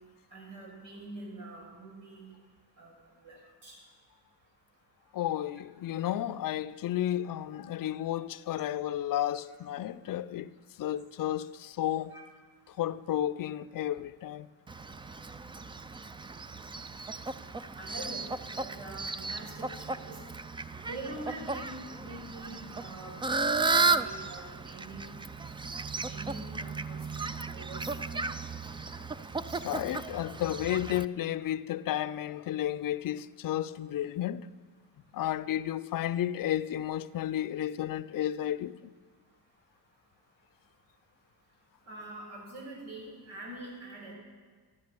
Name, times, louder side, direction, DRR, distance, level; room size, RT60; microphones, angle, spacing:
voice 1, 0.3-2.3 2.8-2.9 3.2-3.8 12.1-12.2 17.8-18.2 18.5-20.2 20.8-23.1 23.5-25.1 26.1-28.2 29.5-29.6 41.9-44.1, right 2 dB, 90° right, 5.9 m, -44 dB
voice 2, 5.1-10.5 10.8-12.1 12.8-14.5 29.6-34.4 35.1-38.8, left 12 dB, 50° left, 0.6 m, -32 dB
Fowl, 14.7-31.0, right 3 dB, 10° right, 0.4 m, -34 dB
14.0 x 12.0 x 6.8 m
cardioid pair, 90°, 44 cm